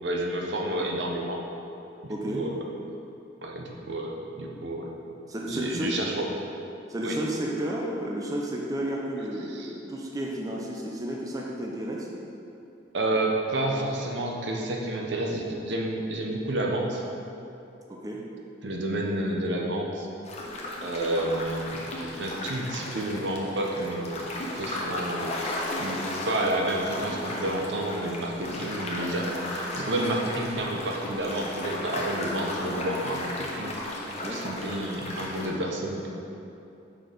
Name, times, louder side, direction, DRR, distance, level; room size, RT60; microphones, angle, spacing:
voice 1, 0.0-1.4 2.0-2.6 3.4-4.9 5.5-6.3 7.0-7.2 9.5-9.7 12.9-17.0 18.6-20.1 20.8-24.3 24.6-36.1, right 1 dB, 65° right, 0 dB, 0.8 m, -30 dB
voice 2, 2.1-2.5 5.3-6.0 6.9-12.1 17.9-18.2 34.2-34.4, right 1 dB, 20° right, -2 dB, 0.5 m, -32 dB
sound 1, 20.2-35.5, left 1 dB, 35° left, 0.9 m, -35 dB
6.2 x 4.5 x 5.1 m, 2.8 s
head